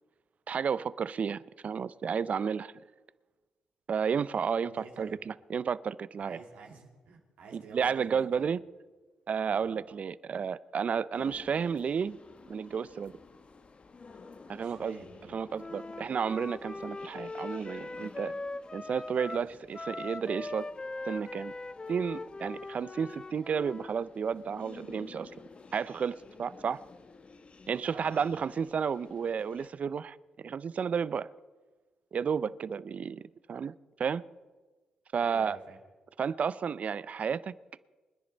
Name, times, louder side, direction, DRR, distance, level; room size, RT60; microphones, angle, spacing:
voice 1, 0.5-2.7 3.9-6.4 7.5-8.6 9.3-12.2 12.5-13.1 14.5-15.0 15.3-18.3 18.7-20.6 21.1-21.5 21.9-25.3 25.7-26.8 27.7-31.3 32.1-33.2 33.5-33.7 34.0-34.2 35.1-35.6 36.2-37.5, right 6 dB, 55° right, 0.5 m, -32 dB
voice 2, 4.7-5.2 6.2-8.5 9.5-9.8 14.6-15.4 27.8-28.3 35.1-35.8, right 4 dB, 80° right, 2.1 m, -49 dB
sound 1, 11.1-29.7, left 4 dB, 45° left, 1.0 m, -53 dB
Wind instrument woodwind instrument, 15.6-24.0, left 2 dB, 30° left, 0.5 m, -41 dB
25.5 x 10.5 x 4.0 m
supercardioid pair, 50°, 3 cm